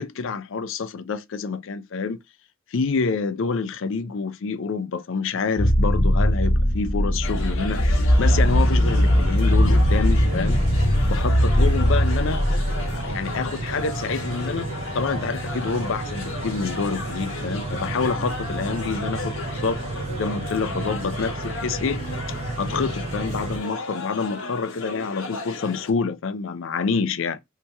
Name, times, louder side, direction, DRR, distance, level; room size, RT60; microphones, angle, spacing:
voice 1, 0.0-2.2 2.7-10.6 11.1-12.4 12.9-19.8 20.2-22.0 22.6-27.4, left 5 dB, 65° left, 0.5 m, -27 dB
sound 1, 5.6-13.1, equal, 25° left, 0.7 m, -19 dB
sound 2, 7.2-25.9, left 3 dB, 85° left, 1.0 m, -35 dB
sound 3, 8.1-23.6, right 3 dB, 30° right, 0.5 m, -32 dB
2.8 x 2.8 x 3.3 m
head